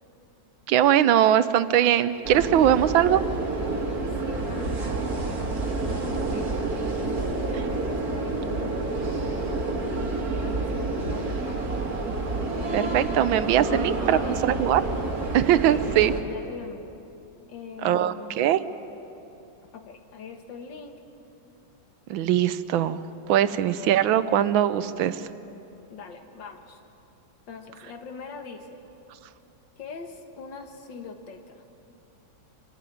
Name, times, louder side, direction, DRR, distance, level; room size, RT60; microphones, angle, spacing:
voice 1, 0.7-3.2 12.7-14.8 15.3-16.1 17.8-18.6 22.1-23.0 23.3-25.2, right 11 dB, 85° right, 13 dB, 1.5 m, -21 dB
sound 1, 2.2-16.2, right 3 dB, 50° right, 2.4 m, -29 dB
voice 2, 4.1-6.7 7.0-9.6 10.4-11.7 13.7-14.6 15.7-17.0 17.5-18.6 19.7-21.0 25.9-26.8 27.5-28.8 29.8-31.7, left 5 dB, 70° left, 5 dB, 2.2 m, -41 dB
24.5 x 13.5 x 9.9 m, 2.8 s
omnidirectional pair, 2.1 m